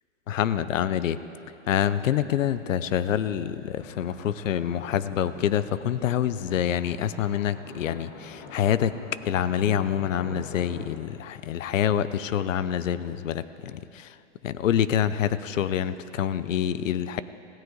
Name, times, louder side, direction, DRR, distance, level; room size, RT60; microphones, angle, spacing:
voice 1, 0.3-1.2 1.7-9.0 9.2-14.1 14.4-17.2, left 10 dB, 80° left, 15 dB, 0.7 m, -26 dB
sound 1, 3.8-10.9, left 5 dB, 20° left, 0.9 m, -45 dB
17.5 x 16.5 x 3.9 m, 2.7 s
hypercardioid pair, 165°, 38 cm